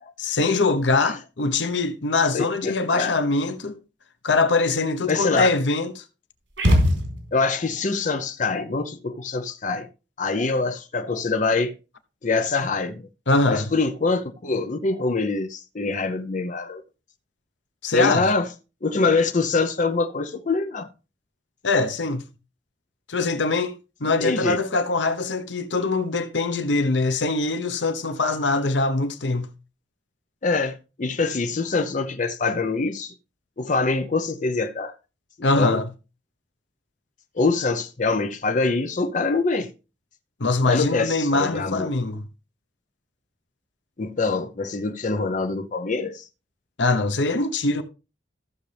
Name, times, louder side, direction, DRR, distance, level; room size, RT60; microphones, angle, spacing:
voice 1, 0.2-3.8 4.2-6.0 13.3-13.7 17.8-18.2 21.6-22.3 23.1-29.5 35.4-35.9 40.4-42.2 46.8-47.8, left 3 dB, 80° left, 1.0 m, -23 dB
voice 2, 2.3-3.1 5.1-5.5 7.3-9.9 10.2-11.7 12.2-13.0 13.5-16.8 17.9-18.5 18.8-20.9 24.0-24.6 30.4-33.1 33.6-34.9 35.6-35.8 37.4-39.7 40.7-41.9 44.0-46.3, left 3 dB, 45° left, 0.7 m, -24 dB
sound 1, 6.6-7.6, equal, 80° right, 3.9 m, -20 dB
14.5 x 6.6 x 3.4 m
head